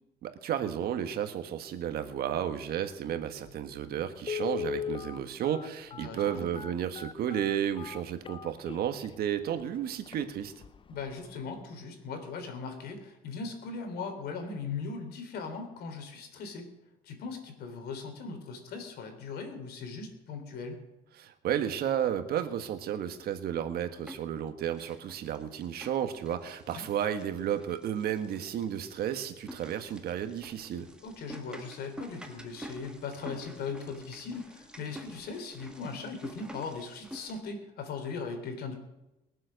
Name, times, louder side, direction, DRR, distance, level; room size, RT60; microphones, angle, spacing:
voice 1, 0.2-10.5 21.2-30.9, right 9 dB, 65° right, 8 dB, 1.4 m, -32 dB
Telephone, 3.5-3.6 4.2-9.1 9.6-9.7 10.1-10.2 10.6-10.9 11.2-11.3, left 8 dB, 30° left, 0.6 m, -38 dB
voice 2, 6.0-6.5 10.9-16.7 17.0-20.8 26.7-26.9 31.0-38.8, left 4 dB, 70° left, 6 dB, 3.5 m, -39 dB
sound 1, 23.5-24.3 24.6-37.4, equal, 5° right, 1.7 m, -48 dB
21.5 x 7.5 x 6.4 m, 0.95 s
cardioid pair, 110°, 17 cm